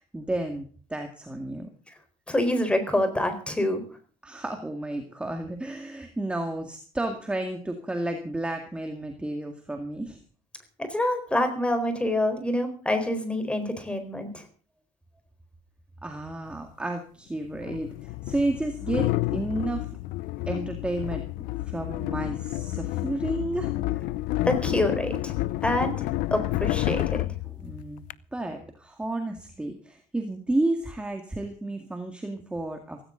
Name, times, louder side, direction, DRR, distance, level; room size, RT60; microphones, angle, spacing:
voice 1, 0.0-1.7 4.2-10.2 16.0-20.0 20.5-21.2 21.7-23.7 27.4-28.0 28.3-33.0, right 2 dB, 10° right, 4 dB, 2.0 m, -32 dB
voice 2, 2.3-3.8 10.8-14.4 24.4-25.3 25.6-25.9 26.3-27.3, left 1 dB, 10° left, 8 dB, 4.3 m, -26 dB
sound 1, 16.5-16.6 17.5-28.1, left 17 dB, 80° left, 0.6 m, -30 dB
17.5 x 16.5 x 3.9 m, 0.43 s
cardioid pair, 155°, 14 cm